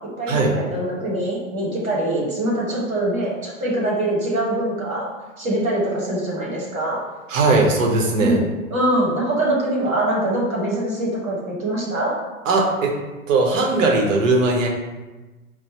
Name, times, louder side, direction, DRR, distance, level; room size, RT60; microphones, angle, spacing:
voice 1, 0.2-5.1 5.4-7.0 8.2-8.4 8.7-12.1, right 1 dB, 85° right, -4 dB, 1.4 m, -23 dB
voice 2, 7.3-8.4 12.4-12.9 13.3-14.7, right 3 dB, 65° right, 1 dB, 0.9 m, -18 dB
4.6 x 2.2 x 2.8 m, 1.2 s
figure-of-eight pair, 105°, 41 cm